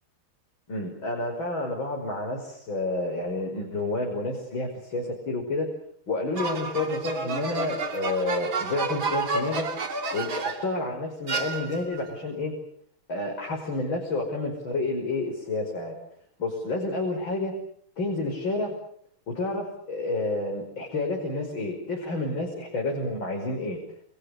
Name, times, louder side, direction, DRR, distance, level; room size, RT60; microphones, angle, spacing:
voice 1, 0.7-5.7 6.1-9.7 10.1-12.5 13.1-16.0 16.4-17.5 18.0-18.8 19.3-23.8, left 2 dB, 70° left, 1 dB, 6.2 m, -29 dB
sound 1, 6.4-10.8 11.3-12.0, right 4 dB, 70° right, 3.6 m, -31 dB
29.0 x 28.5 x 6.7 m, 0.65 s
omnidirectional pair, 2.2 m